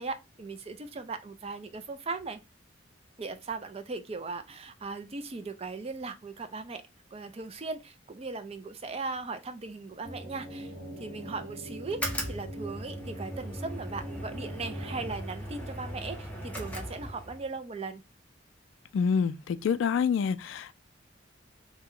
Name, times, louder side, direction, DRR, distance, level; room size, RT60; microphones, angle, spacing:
voice 1, 0.0-2.4 3.2-6.8 7.1-10.7 11.0-12.0 12.3-18.0, right 3 dB, 30° right, 0.4 m, -38 dB
sound 1, 10.0-15.1, right 1 dB, 55° right, 1.2 m, -42 dB
sound 2, 11.8-17.5, equal, 10° left, 0.7 m, -38 dB
voice 2, 18.9-20.7, left 6 dB, 75° left, 0.3 m, -27 dB
2.8 x 2.1 x 3.6 m
head